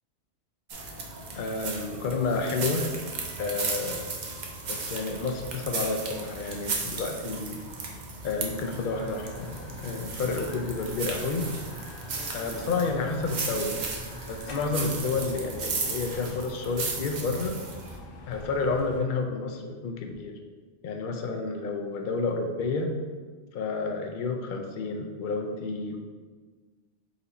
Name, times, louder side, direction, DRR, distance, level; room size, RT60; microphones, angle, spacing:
Passos em folhagens, 0.7-18.0, right 4 dB, 50° right, 0.6 m, -36 dB
voice 1, 1.3-2.9 3.4-4.1 4.6-7.6 8.2-11.4 12.3-13.9 14.3-17.6 18.3-20.3 20.8-22.9 23.5-26.0, left 3 dB, 60° left, 3 dB, 0.5 m, -30 dB
sound 1, 8.5-19.0, left 1 dB, 90° left, 1.1 m, -44 dB
4.2 x 2.7 x 4.0 m, 1.4 s
omnidirectional pair, 1.3 m